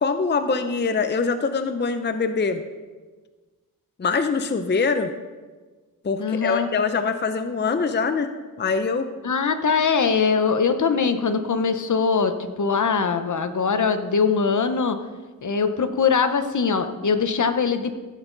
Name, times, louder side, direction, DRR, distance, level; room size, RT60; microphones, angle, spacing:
voice 1, 0.0-2.6 4.0-5.1 6.0-8.3 8.6-9.1, left 4 dB, 30° left, 9 dB, 0.6 m, -23 dB
voice 2, 6.2-6.7 9.2-15.0 15.4-17.9, left 5 dB, 55° left, 9 dB, 0.9 m, -22 dB
15.5 x 8.2 x 3.9 m, 1.3 s
wide cardioid pair, 90°, 35 cm